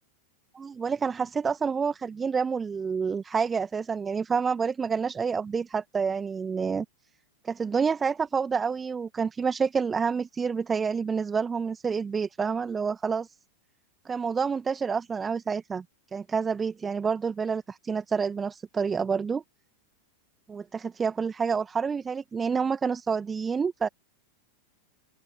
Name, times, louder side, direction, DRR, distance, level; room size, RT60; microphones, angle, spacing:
voice 1, 0.5-6.9 7.4-13.3 14.1-15.8 16.1-19.4 20.5-23.9, right 5 dB, 15° right, 1.6 m, -28 dB
open air
figure-of-eight pair, 90°, 0 cm